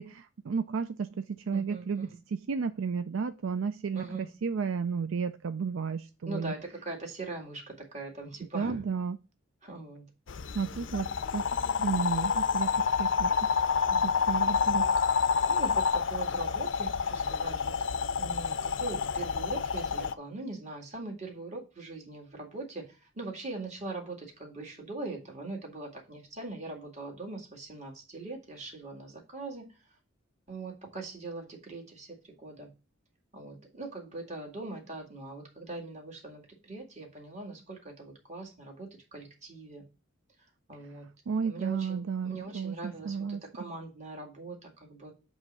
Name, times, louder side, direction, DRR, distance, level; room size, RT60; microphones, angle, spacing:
voice 1, 0.0-4.0 4.4-6.5 8.5-9.2 10.5-13.7 14.0-14.9 41.3-43.4, right 5 dB, 75° right, 10 dB, 0.4 m, -33 dB
voice 2, 1.5-2.2 3.9-4.3 6.3-8.8 9.6-10.0 13.9-14.2 15.5-17.7 18.2-29.7 30.5-32.7 33.3-39.8 40.7-41.1 41.4-45.1, right 2 dB, 35° right, 0 dB, 2.0 m, -41 dB
sound 1, 10.3-20.1, left 6 dB, 65° left, 0.5 m, -28 dB
7.7 x 3.1 x 6.1 m, 0.30 s
head